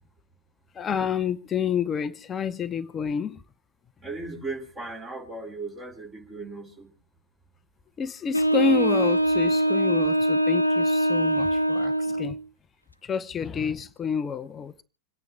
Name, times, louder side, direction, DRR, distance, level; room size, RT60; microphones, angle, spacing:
voice 1, 0.8-3.4 8.0-12.4 13.0-14.8, left 7 dB, 20° left, 0.8 m, -29 dB
voice 2, 4.0-6.9, right 3 dB, 20° right, 4.7 m, -37 dB
Wind instrument woodwind instrument, 8.3-12.4, right 1 dB, 90° left, 0.6 m, -23 dB
27.0 x 9.4 x 3.6 m
figure-of-eight pair, 90°, 0 cm